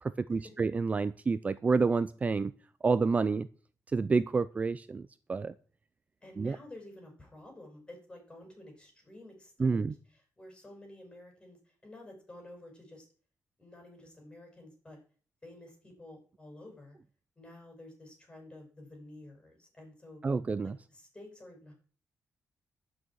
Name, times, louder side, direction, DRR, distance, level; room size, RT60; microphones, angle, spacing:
voice 1, 0.0-2.5 2.8-3.5 3.9-5.5 6.4-6.6 9.6-9.9 20.2-20.8, right 4 dB, 30° right, 14 dB, 0.6 m, -29 dB
voice 2, 6.2-13.1 13.6-15.0 15.4-17.0 17.4-20.2 20.6-21.7, left 1 dB, 20° left, 2 dB, 7.2 m, -51 dB
11.5 x 6.5 x 9.1 m, 0.42 s
cardioid pair, 115°, 5 cm